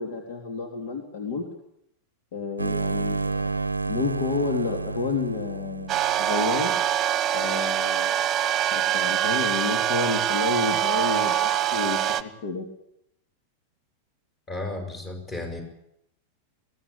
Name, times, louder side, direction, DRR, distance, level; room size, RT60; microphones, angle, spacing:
voice 1, 0.0-1.4 2.3-3.6 3.9-6.7 7.3-8.2 8.7-12.6, left 4 dB, 55° left, 4 dB, 3.3 m, -30 dB
sound 1, 2.6-7.0, right 3 dB, 80° right, 0.8 m, -30 dB
sound 2, 5.9-12.2, right 11 dB, 30° right, 1.3 m, -24 dB
voice 2, 14.5-15.6, left 2 dB, 25° left, 5 dB, 6.5 m, -33 dB
22.0 x 17.0 x 8.7 m, 0.79 s
figure-of-eight pair, 90°, 0 cm